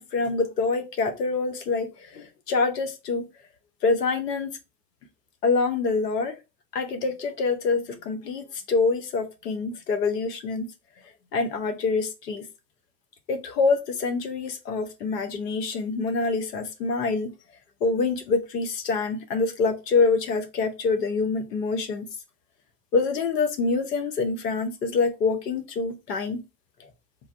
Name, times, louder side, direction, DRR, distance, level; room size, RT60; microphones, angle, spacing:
voice 1, 0.0-3.2 3.8-4.5 5.4-6.3 6.7-10.7 11.3-12.4 13.3-17.3 17.8-22.1 22.9-26.4, left 4 dB, 85° left, 0.7 m, -26 dB
3.3 x 2.2 x 2.4 m
figure-of-eight pair, 60°, 47 cm